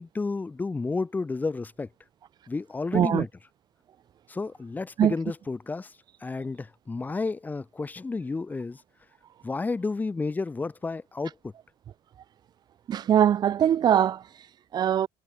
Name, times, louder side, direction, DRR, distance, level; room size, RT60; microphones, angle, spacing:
voice 1, 0.0-1.9 2.5-3.3 4.3-8.8 9.4-11.5, left 3 dB, 15° left, 5.0 m, -31 dB
voice 2, 2.9-3.3 5.0-5.1 12.9-15.1, right 10 dB, 45° right, 6.9 m, -22 dB
cardioid pair, 115°, 10 cm